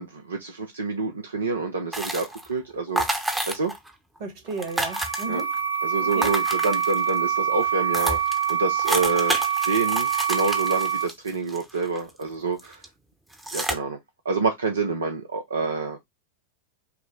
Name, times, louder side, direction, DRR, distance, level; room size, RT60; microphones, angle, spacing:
voice 1, 0.0-3.1 3.5-3.7 5.3-5.4 5.8-9.4 9.6-12.9 13.5-14.0 14.2-16.0, right 4 dB, 75° right, 0.6 m, -27 dB
sound 1, 1.9-2.5 3.0-3.9 4.2-4.3 4.5-5.6 6.1-7.2 7.6-7.7 7.9-12.2 12.6-12.9 13.3-13.7, right 1 dB, 10° right, 0.8 m, -30 dB
voice 2, 4.2-5.5 6.0-6.3, right 4 dB, 45° right, 1.4 m, -33 dB
sound 2, 4.5-11.0, right 8 dB, 70° left, 1.6 m, -25 dB
5.7 x 2.1 x 3.6 m
figure-of-eight pair, 90°, 0 cm